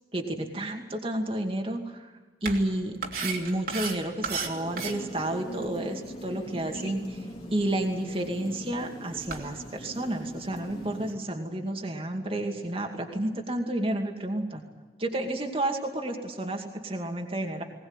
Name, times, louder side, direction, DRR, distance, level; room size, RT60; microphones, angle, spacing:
voice 1, 0.1-2.1 2.4-7.3 7.5-14.6 15.0-17.6, right 1 dB, 30° right, 3 dB, 2.4 m, -31 dB
sound 1, 2.4-10.9, right 5 dB, 55° right, 2.9 m, -39 dB
sound 2, 4.4-11.1, equal, 30° left, 2.8 m, -41 dB
20.5 x 19.5 x 8.9 m, 1.3 s
head